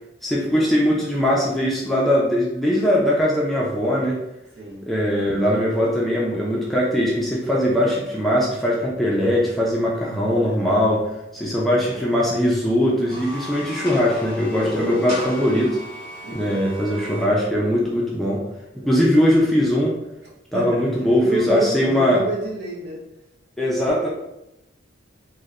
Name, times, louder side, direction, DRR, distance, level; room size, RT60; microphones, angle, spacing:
voice 1, 0.2-4.2 4.9-15.8 16.3-18.4 18.9-20.0 20.5-22.2 23.6-24.1, equal, ahead, -5 dB, 0.3 m, -20 dB
voice 2, 4.6-4.9 10.4-10.8 11.4-12.0 16.2-16.9 18.7-19.0 20.5-20.8 21.2-23.0, right 2 dB, 60° right, -3 dB, 0.6 m, -30 dB
sound 1, 12.9-17.3, left 1 dB, 80° right, 1.0 m, -36 dB
2.8 x 2.0 x 2.3 m, 0.89 s
head